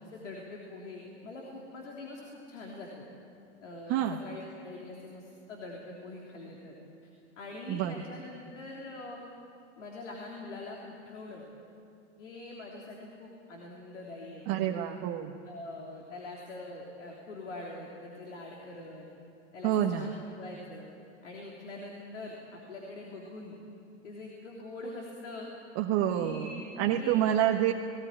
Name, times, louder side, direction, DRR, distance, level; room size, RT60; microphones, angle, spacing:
voice 1, 0.0-3.0 3.6-6.7 7.0-7.1 7.4-9.2 9.8-11.4 12.2-14.8 15.5-19.1 19.5-20.9 21.2-23.6 24.0-25.5 26.1-27.5, left 2 dB, 80° left, -2 dB, 3.5 m, -44 dB
voice 2, 14.5-15.4 19.6-20.1 25.7-27.7, right 11 dB, 40° right, 2 dB, 1.3 m, -28 dB
20.0 x 17.5 x 9.9 m, 2.6 s
hypercardioid pair, 105°, 36 cm